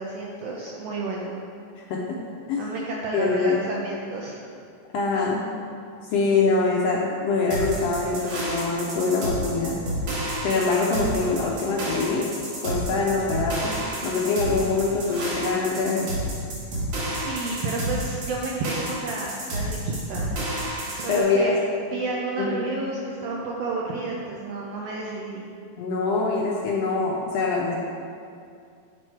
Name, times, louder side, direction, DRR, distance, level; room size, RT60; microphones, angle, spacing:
voice 1, 0.0-1.4 2.6-4.5 17.0-20.5 20.9-21.5 21.9-25.4, right 3 dB, 80° right, -2 dB, 1.5 m, -31 dB
voice 2, 1.8-2.2 2.5-2.6 3.1-3.6 4.9-5.4 6.1-9.8 10.4-12.3 12.6-13.7 14.0-16.1 21.1-21.5 22.4-22.6 25.8-27.8, left 4 dB, 75° left, -3 dB, 1.5 m, -24 dB
sound 1, 7.5-21.2, right 1 dB, 65° right, 2.7 m, -30 dB
8.1 x 4.7 x 4.4 m, 2.3 s
omnidirectional pair, 3.4 m